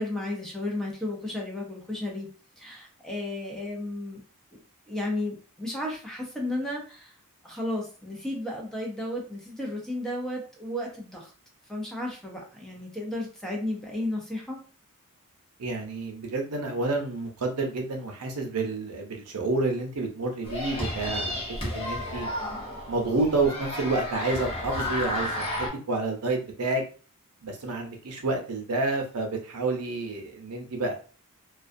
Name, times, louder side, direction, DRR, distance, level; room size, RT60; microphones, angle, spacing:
voice 1, 0.0-2.3 2.6-4.2 4.9-7.1 7.4-11.3 11.7-14.6, left 1 dB, 5° left, -1 dB, 0.6 m, -33 dB
voice 2, 15.6-21.4 21.7-22.3 22.9-26.8 27.4-30.9, right 3 dB, 85° right, 2 dB, 0.6 m, -29 dB
sound 1, 20.4-25.7, left 1 dB, 25° left, 0.9 m, -32 dB
2.3 x 2.3 x 2.5 m, 0.38 s
head